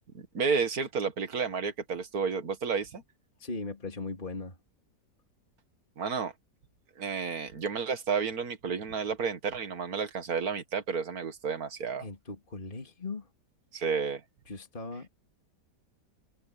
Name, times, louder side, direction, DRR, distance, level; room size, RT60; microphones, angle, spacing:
voice 1, 0.1-3.0 6.0-6.3 7.0-12.1 13.7-14.2, right 5 dB, 60° right, 2.3 m, -31 dB
voice 2, 3.4-4.6 12.0-13.3 14.5-15.1, left 3 dB, 30° left, 3.0 m, -38 dB
omnidirectional pair, 1.8 m